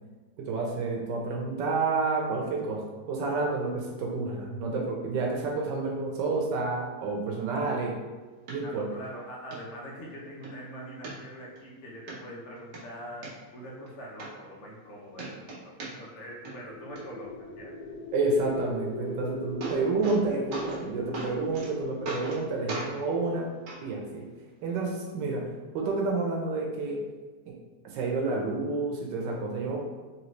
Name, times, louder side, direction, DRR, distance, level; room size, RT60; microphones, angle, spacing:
voice 1, 0.4-2.8 3.1-8.0 8.5-8.9 18.1-23.5 23.8-24.3 24.6-25.5 25.7-27.0 27.5-27.6 27.8-29.8, right 3 dB, 90° right, -1 dB, 1.3 m, -29 dB
sound 1, 8.5-8.6 9.0-9.1 9.5-9.6 10.1-10.5 11.0-11.6 12.1-12.2 12.6-13.3 13.9-14.0 14.2-14.9 15.1-16.2 16.4-17.0 19.0-19.1 19.4-20.2 20.5-20.8 21.1-21.7 22.0-22.4 22.7-22.9 23.7-23.8 24.7-24.8, right 3 dB, 70° right, 1.5 m, -37 dB
voice 2, 8.6-17.7, equal, 50° left, -3 dB, 1.1 m, -43 dB
sound 2, 16.4-24.5, left 1 dB, 80° left, 1.2 m, -40 dB
3.9 x 3.0 x 3.1 m, 1.3 s
omnidirectional pair, 1.9 m